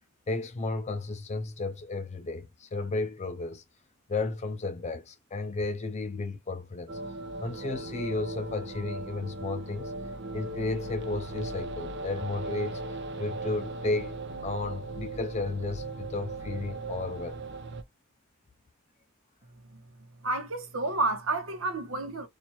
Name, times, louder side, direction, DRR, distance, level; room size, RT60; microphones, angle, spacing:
voice 1, 0.3-3.6 4.1-7.0 7.4-9.9 10.3-12.8 13.2-17.4, left 3 dB, 35° left, 0.4 m, -33 dB
sound 1, 6.9-17.8, right 2 dB, 60° right, 0.6 m, -38 dB
voice 2, 20.2-22.3, right 2 dB, 75° right, 1.1 m, -30 dB
4.3 x 2.4 x 2.9 m
head